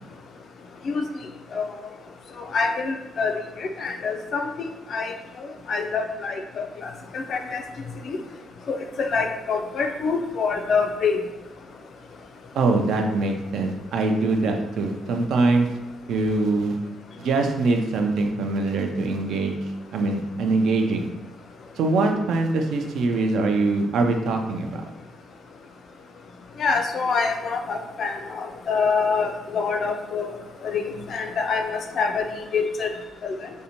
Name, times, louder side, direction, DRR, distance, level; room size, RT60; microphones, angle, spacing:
voice 1, 2.5-3.3 3.6-5.1 5.7-6.3 7.1-7.6 8.1-8.2 8.7-11.2 26.6-30.3 30.6-32.3 32.5-32.9 33.2-33.4, left 5 dB, 60° left, 4 dB, 0.3 m, -25 dB
voice 2, 12.5-15.7 16.1-16.8 17.2-21.1 21.8-24.8, right 3 dB, 75° right, 4 dB, 0.4 m, -23 dB
2.6 x 2.1 x 2.8 m, 0.96 s
cardioid pair, 90°, 0 cm